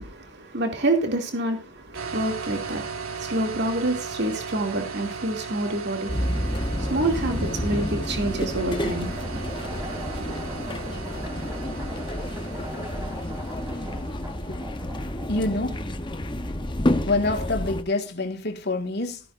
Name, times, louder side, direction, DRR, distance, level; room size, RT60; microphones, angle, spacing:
voice 1, 0.0-6.1 6.9-9.1, right 2 dB, 55° right, 2.5 m, -27 dB
sound 1, 1.9-14.5, right 5 dB, 85° right, 1.7 m, -37 dB
sound 2, 6.1-17.8, left 1 dB, 20° left, 0.9 m, -30 dB
sound 3, 8.8-17.1, right 1 dB, 15° right, 3.0 m, -42 dB
voice 2, 15.2-15.9 17.1-19.2, left 2 dB, 50° left, 1.9 m, -26 dB
14.0 x 13.0 x 2.6 m
head